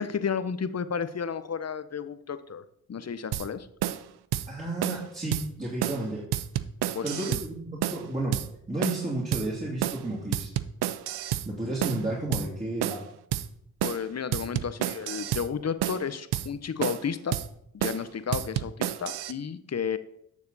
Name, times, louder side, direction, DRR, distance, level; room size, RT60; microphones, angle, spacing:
voice 1, 0.0-2.6 2.9-3.7 6.9-7.4 13.8-17.4 17.7-20.0, left 6 dB, 45° left, 12 dB, 0.8 m, -32 dB
sound 1, 3.3-3.5 3.8-4.0 4.3-4.5 4.8-5.0 5.3-5.5 5.8-6.0 6.3-7.5 7.8-8.0 8.3-8.5 8.8-9.0 9.3-9.5 9.8-10.0 10.3-11.5 11.8-12.0 12.3-12.5 12.8-13.0 13.3-13.5 13.8-14.0 14.3-15.5 15.8-16.0 16.3-16.5 16.8-17.1 17.3-17.5 17.8-18.0 18.3-19.3, right 12 dB, 85° right, 0.5 m, -30 dB
voice 2, 4.5-6.2 7.0-8.4 8.7-10.5 11.4-13.0, right 1 dB, 20° right, -6 dB, 2.9 m, -32 dB
9.7 x 6.7 x 4.0 m, 0.74 s
cardioid pair, 55°, 38 cm